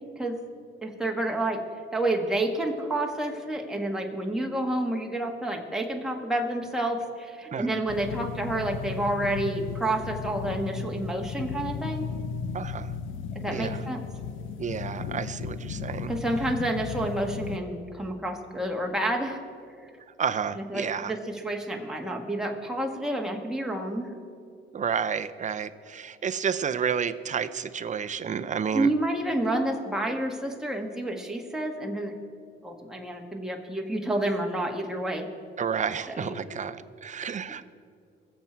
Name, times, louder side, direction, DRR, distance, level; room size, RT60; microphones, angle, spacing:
voice 1, 0.8-1.6 1.9-12.1 13.3-14.0 16.1-19.4 20.5-24.1 28.7-32.1 32.6-35.3 36.1-36.3, right 1 dB, 5° right, 0 dB, 1.7 m, -29 dB
sound 1, 7.9-17.6, left 6 dB, 80° left, 0.7 m, -35 dB
voice 2, 12.5-12.9 13.5-13.8 14.6-16.1 20.2-21.1 24.7-28.9 35.6-37.7, right 7 dB, 40° right, 12 dB, 0.6 m, -30 dB
20.0 x 7.5 x 4.6 m, 2.4 s
cardioid pair, 90°, 20 cm